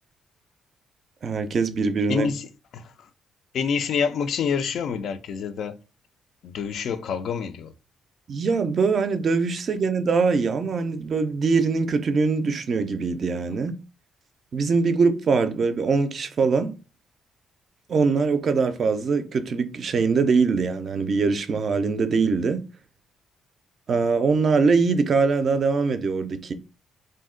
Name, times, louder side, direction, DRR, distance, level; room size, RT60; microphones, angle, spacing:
voice 1, 1.2-2.3 8.3-13.8 14.5-16.8 17.9-22.6 23.9-26.5, right 4 dB, 50° right, 0.4 m, -22 dB
voice 2, 2.1-2.5 2.7-3.1 3.5-5.8 6.4-7.7, left 6 dB, 70° left, 0.3 m, -27 dB
2.6 x 2.1 x 3.6 m
cardioid pair, 90°, 0 cm